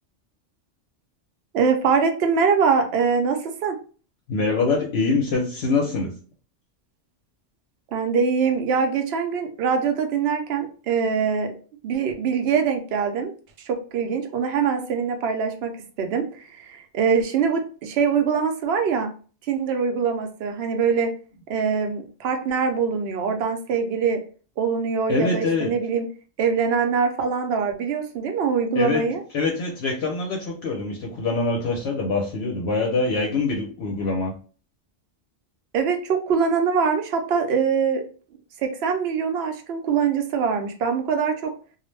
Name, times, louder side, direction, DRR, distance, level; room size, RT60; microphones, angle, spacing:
voice 1, 1.5-3.8 7.9-11.5 11.8-13.3 13.7-15.7 16.0-19.1 19.5-21.1 21.5-24.2 24.6-26.1 26.4-29.2 35.7-38.0 38.6-41.5, right 6 dB, 65° right, 0.8 m, -23 dB
voice 2, 4.3-6.2 25.1-25.8 28.7-29.1 29.3-34.3, left 3 dB, 65° left, 0.8 m, -24 dB
2.4 x 2.0 x 3.1 m
omnidirectional pair, 1.2 m